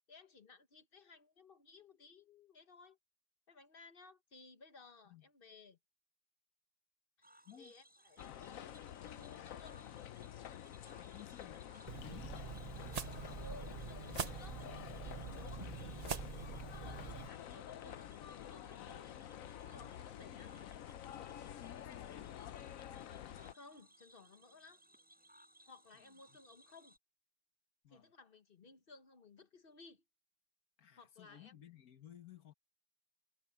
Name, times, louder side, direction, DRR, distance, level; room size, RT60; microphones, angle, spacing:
voice 1, 0.0-3.0 3.5-5.8 7.2-8.8 9.1-9.9 12.1-12.3 13.2-14.6 15.0-20.5 23.5-24.8 25.6-27.0 27.9-30.0 31.0-31.5, left 3 dB, 40° left, 1.2 m, -59 dB
Cricket / Frog, 7.2-27.0, right 1 dB, 5° right, 5.7 m, -65 dB
sound 1, 8.2-23.5, left 11 dB, 70° left, 1.1 m, -49 dB
voice 2, 11.1-12.5 15.3-15.6 21.4-22.4 27.8-28.1 30.8-32.5, left 11 dB, 90° left, 1.8 m, -56 dB
sound 2, 11.9-17.3, right 6 dB, 40° right, 0.5 m, -44 dB
omnidirectional pair, 1.5 m